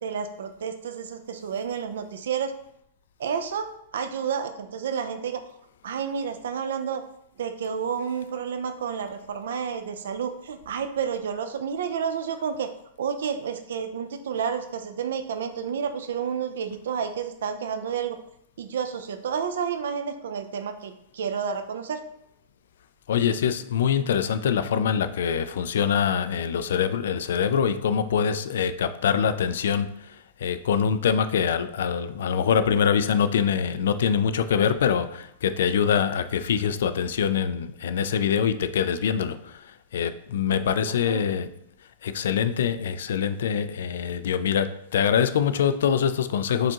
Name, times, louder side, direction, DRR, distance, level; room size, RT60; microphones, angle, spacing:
voice 1, 0.0-2.5 3.2-5.4 5.8-7.0 7.4-12.7 13.0-18.2 18.6-22.0 40.5-40.7 41.1-41.3, right 7 dB, 80° right, 0.5 m, -30 dB
voice 2, 23.1-41.5 42.0-46.7, left 7 dB, 70° left, 0.4 m, -24 dB
4.9 x 3.6 x 2.9 m
supercardioid pair, 175°, 0 cm